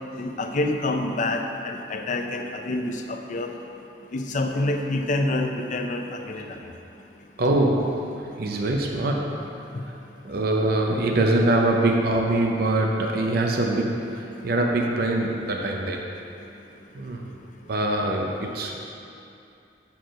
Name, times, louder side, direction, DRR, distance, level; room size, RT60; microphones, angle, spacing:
voice 1, 0.2-3.5 4.1-6.6 9.7-9.8, left 2 dB, 45° left, 4 dB, 0.6 m, -27 dB
voice 2, 7.4-9.5 9.8-10.0 10.2-16.0 16.9-17.3 17.7-18.8, right 2 dB, 60° right, 1 dB, 0.6 m, -24 dB
7.6 x 4.5 x 6.2 m, 2.7 s
head